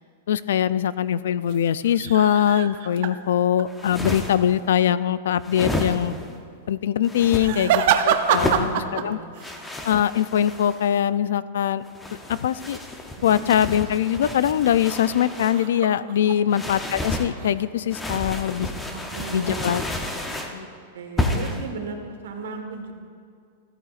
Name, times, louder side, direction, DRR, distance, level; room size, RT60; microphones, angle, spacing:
voice 1, 0.3-6.1 6.7-9.2 9.8-11.8 12.3-12.8 13.2-18.7 19.3-19.8 20.5-20.7, left 10 dB, 75° left, 17 dB, 0.3 m, -22 dB
sound 1, 1.4-3.7 7.3-9.6 10.0-10.2 15.5-16.8 17.1-18.3 18.8-19.2, right 9 dB, 50° right, 0.6 m, -26 dB
sound 2, 3.7-4.5 5.4-6.3 7.0-7.5 8.2-8.7 9.4-10.9 11.8-15.6 16.5-17.3 17.9-20.6 21.2-21.6, left 1 dB, 10° left, 0.7 m, -31 dB
voice 2, 7.5-8.1 8.4-9.5 13.2-13.4 16.2-16.5 18.9-19.8 20.9-22.9, right 5 dB, 85° right, 4 dB, 1.4 m, -36 dB
14.0 x 13.0 x 2.5 m, 2.3 s
supercardioid pair, 165°, 0 cm